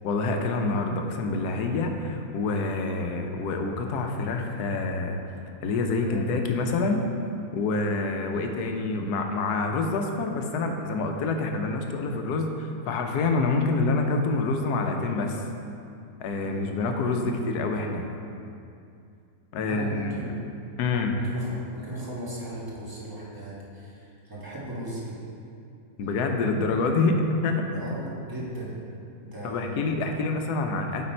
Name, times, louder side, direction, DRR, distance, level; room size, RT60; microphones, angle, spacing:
voice 1, 0.0-5.2 5.6-7.0 7.5-15.4 16.2-18.1 19.5-20.3 20.8-21.2 26.0-27.2 27.4-27.6 29.4-31.0, left 3 dB, 90° left, 4 dB, 1.2 m, -27 dB
voice 2, 19.6-20.3 21.1-25.2 27.7-28.8 29.2-30.1, right 1 dB, 15° right, -6 dB, 1.2 m, -37 dB
8.2 x 4.1 x 4.3 m, 2.5 s
omnidirectional pair, 1.6 m